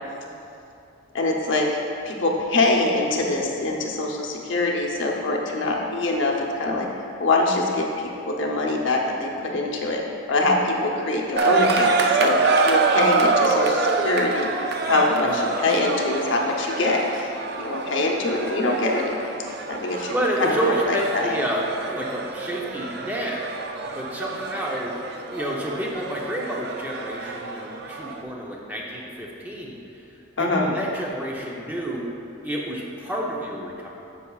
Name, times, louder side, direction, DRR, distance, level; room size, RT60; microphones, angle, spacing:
voice 1, 1.1-1.7 2.0-6.9 7.2-10.0 10.3-12.4 12.6-17.3 17.6-19.1 19.7-20.1 20.4-21.3 30.4-30.7, left 2 dB, 65° left, 0 dB, 0.8 m, -24 dB
sound 1, 11.4-28.2, right 4 dB, 50° right, 0.4 m, -26 dB
voice 2, 20.1-23.4 23.9-24.9 25.3-32.1 32.4-33.9, right 1 dB, 10° right, -3 dB, 0.6 m, -29 dB
9.8 x 6.8 x 2.4 m, 2.7 s
head